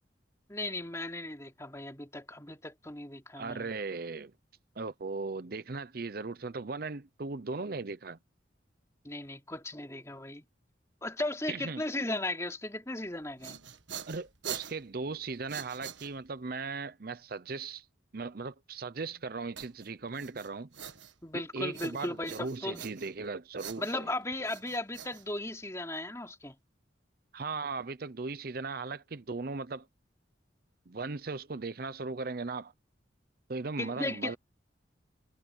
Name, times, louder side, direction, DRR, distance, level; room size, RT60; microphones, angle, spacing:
voice 1, 0.5-3.7 9.0-10.4 11.0-13.6 21.2-22.9 23.8-26.5 33.8-34.4, left 2 dB, 15° left, 2.9 m, -36 dB
voice 2, 3.4-4.3 4.8-8.2 11.5-11.8 14.1-17.9 18.1-20.7 21.3-24.0 27.3-29.9 30.9-32.7 33.5-34.4, right 4 dB, 50° right, 0.6 m, -38 dB
sound 1, 13.1-16.5 19.6-21.4 21.7-23.3 23.6-25.8, right 9 dB, 75° right, 1.5 m, -45 dB
head